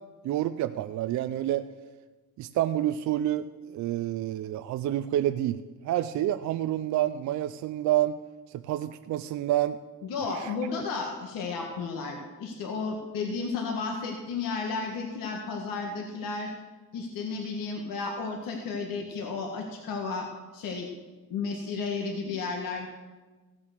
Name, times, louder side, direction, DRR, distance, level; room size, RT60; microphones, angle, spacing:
voice 1, 0.2-1.6 2.4-3.5 3.7-8.2 8.6-9.8 10.3-10.5, right 13 dB, 55° right, 10 dB, 0.5 m, -28 dB
voice 2, 10.0-16.5 16.9-20.3 20.5-20.9 21.3-22.9, left 4 dB, 65° left, 1 dB, 1.6 m, -33 dB
16.0 x 7.0 x 6.6 m, 1.3 s
cardioid pair, 155°, 36 cm